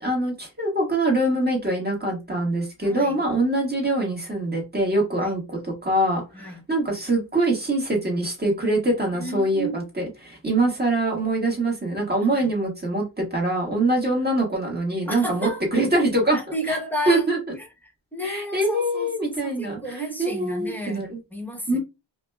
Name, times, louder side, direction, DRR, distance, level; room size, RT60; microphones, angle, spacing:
voice 1, 0.0-16.4 16.7-16.8 17.1-17.5 18.2-21.2 21.7-21.8, right 1 dB, 20° right, 1.4 m, -24 dB
voice 2, 2.8-3.2 5.2-5.4 6.3-6.6 9.1-9.8 12.2-12.5 15.1-15.6 16.3-17.2 17.6-21.8, equal, 5° left, 0.9 m, -32 dB
4.9 x 2.2 x 2.2 m
wide cardioid pair, 120°, 47 cm